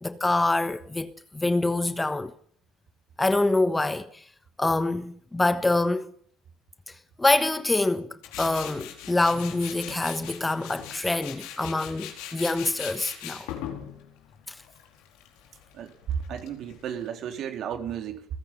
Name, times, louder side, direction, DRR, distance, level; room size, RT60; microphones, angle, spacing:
voice 1, 0.0-2.3 3.2-4.2 4.6-6.1 7.2-8.1 8.4-13.5 14.5-14.6, left 2 dB, 15° left, 1.3 m, -25 dB
Tools, 8.2-17.1, left 10 dB, 65° left, 4.7 m, -41 dB
voice 2, 15.7-18.3, right 8 dB, 50° right, 3.9 m, -33 dB
30.0 x 16.0 x 5.7 m
hypercardioid pair, 70°, 0 cm